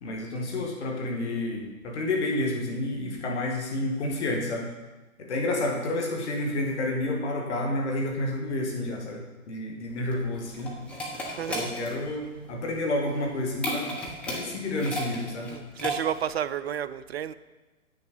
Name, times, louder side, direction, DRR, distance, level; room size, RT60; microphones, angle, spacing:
voice 1, 0.0-4.7 5.2-10.7 11.5-13.9 14.3-15.5, left 2 dB, 50° left, 2.2 m, -30 dB
sound 1, 9.9-16.4, equal, 5° left, 0.7 m, -35 dB
voice 2, 11.3-11.7 15.5-17.3, right 9 dB, 50° right, 0.4 m, -31 dB
8.7 x 6.5 x 5.4 m
figure-of-eight pair, 125°, 43 cm